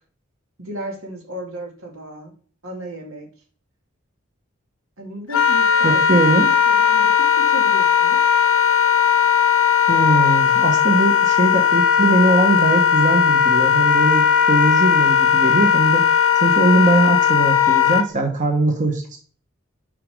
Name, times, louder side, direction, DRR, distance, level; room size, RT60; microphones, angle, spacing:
voice 1, 0.6-2.3 2.6-3.3 5.0-8.2, right 1 dB, 85° right, 1 dB, 1.9 m, -34 dB
Wind instrument woodwind instrument, 5.3-18.1, left 8 dB, 80° left, 0.6 m, -17 dB
voice 2, 5.8-6.5 9.9-16.1 16.4-19.2, right 2 dB, 35° right, 2 dB, 1.0 m, -20 dB
6.8 x 5.1 x 3.4 m, 0.43 s
head